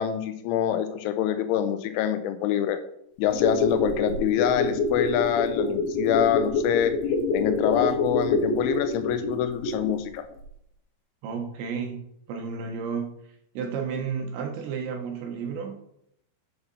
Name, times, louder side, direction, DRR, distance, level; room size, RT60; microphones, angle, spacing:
voice 1, 0.0-2.8 3.2-6.9 7.3-10.3, left 10 dB, 90° left, 9 dB, 3.3 m, -25 dB
sound 1, 3.2-10.1 10.4-10.5, left 3 dB, 70° left, 3.8 m, -26 dB
voice 2, 11.2-13.2 13.5-15.8, right 6 dB, 75° right, 3 dB, 3.5 m, -32 dB
8.7 x 6.9 x 4.2 m, 0.73 s
omnidirectional pair, 5.4 m